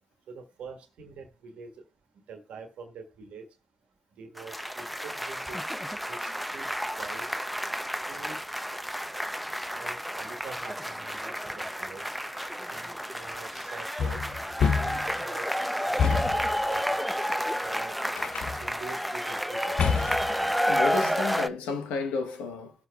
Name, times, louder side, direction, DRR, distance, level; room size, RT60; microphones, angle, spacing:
voice 1, 0.3-1.7 2.3-3.5 4.2-5.6 6.1-6.7 7.0-7.3 8.1-8.4 9.7-12.0 12.7-14.2 14.7-15.5 15.8-16.8 17.6-17.9 18.5-19.8, right 4 dB, 75° right, 1.4 m, -45 dB
sound 1, 4.4-21.5, equal, ahead, 0.6 m, -31 dB
sound 2, 14.0-15.2 16.0-16.5 18.2-18.7 19.8-20.4, left 6 dB, 65° left, 0.5 m, -27 dB
voice 2, 20.7-22.7, left 4 dB, 85° left, 1.1 m, -31 dB
17.5 x 6.8 x 2.3 m
supercardioid pair, 50°, 2 cm